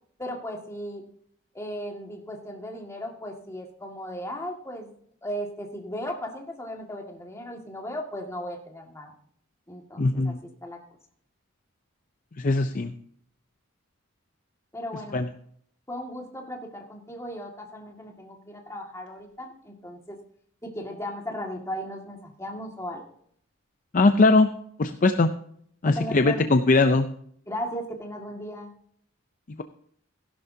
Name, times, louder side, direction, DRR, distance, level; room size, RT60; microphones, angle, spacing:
voice 1, 0.2-1.0 1.5-9.1 9.7-10.8 14.7-15.2 15.9-20.2 20.6-23.0 25.8-26.5 27.5-28.7, equal, 15° left, 1 dB, 1.9 m, -36 dB
voice 2, 10.0-10.4 12.4-12.9 15.1-15.3 23.9-24.5 24.8-25.3 25.8-27.1, left 3 dB, 40° left, 8 dB, 0.5 m, -20 dB
15.5 x 11.5 x 2.8 m, 0.63 s
head